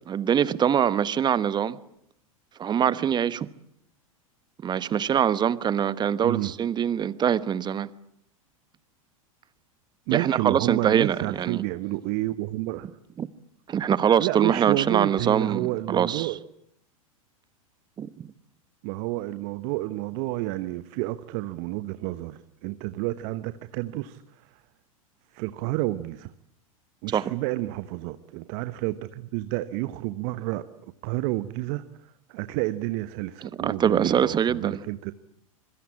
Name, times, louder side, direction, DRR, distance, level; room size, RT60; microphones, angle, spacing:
voice 1, 0.1-1.8 2.6-3.5 4.6-7.9 10.1-11.6 13.2-13.3 13.7-16.4 18.0-18.3 27.1-27.3 33.4-34.8, right 8 dB, 25° right, 1.2 m, -24 dB
voice 2, 10.1-12.9 14.2-16.4 18.8-24.2 25.3-26.3 27.0-30.7 31.0-31.8 32.3-35.1, right 18 dB, 50° right, 1.1 m, -30 dB
26.0 x 23.5 x 8.6 m
hypercardioid pair, 95°, 18 cm